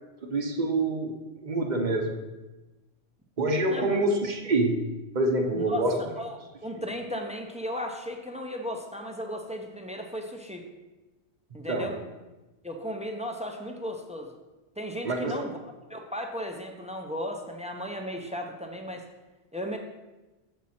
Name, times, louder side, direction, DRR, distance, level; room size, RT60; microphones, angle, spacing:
voice 1, 0.2-1.2 1.4-2.2 3.4-4.8 5.1-6.0 11.7-11.9 15.0-15.4, right 2 dB, 45° right, 3 dB, 0.9 m, -26 dB
voice 2, 5.5-10.6 11.5-12.0 12.6-14.3 14.8-15.6 15.9-19.0 19.5-19.8, equal, 10° right, 3 dB, 0.5 m, -35 dB
7.3 x 6.1 x 4.2 m, 1.1 s
omnidirectional pair, 1.2 m